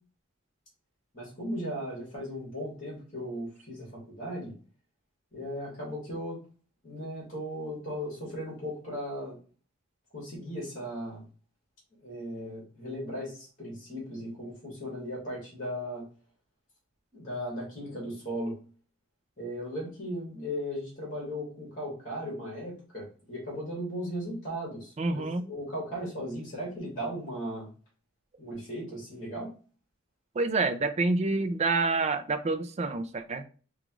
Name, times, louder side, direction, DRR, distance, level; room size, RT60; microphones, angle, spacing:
voice 1, 1.1-4.5 5.3-6.4 6.8-9.4 10.1-11.2 12.0-16.0 17.1-18.6 19.4-27.7 28.4-29.5, equal, 40° left, -4 dB, 2.0 m, -37 dB
voice 2, 25.0-25.4 30.3-33.4, right 3 dB, 30° right, 8 dB, 0.4 m, -28 dB
5.0 x 2.4 x 3.0 m, 0.39 s
head